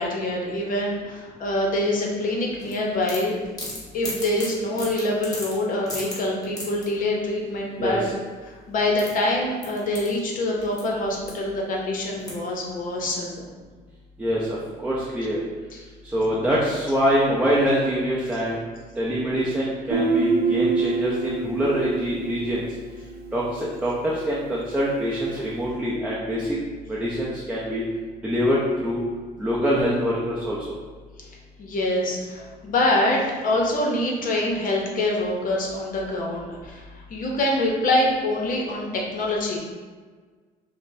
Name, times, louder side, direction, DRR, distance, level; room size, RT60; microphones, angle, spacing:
voice 1, 0.0-3.3 3.9-8.0 8.5-13.5 15.7-15.8 31.2-31.3 31.6-39.6, left 1 dB, 55° left, -1 dB, 0.8 m, -25 dB
sound 1, 2.6-6.9 8.4-8.5 8.7-10.8 11.1-11.6 12.2-12.6, left 1 dB, 20° left, 1.1 m, -36 dB
voice 2, 7.8-8.1 14.2-15.4 16.1-18.6 19.0-22.6 23.3-26.6 26.9-27.8 28.2-29.0 29.4-30.8, equal, 10° right, -6 dB, 0.5 m, -24 dB
Guitar, 19.9-23.5, right 4 dB, 65° right, 0.5 m, -26 dB
5.0 x 2.1 x 2.7 m, 1.4 s
cardioid pair, 110°, 17 cm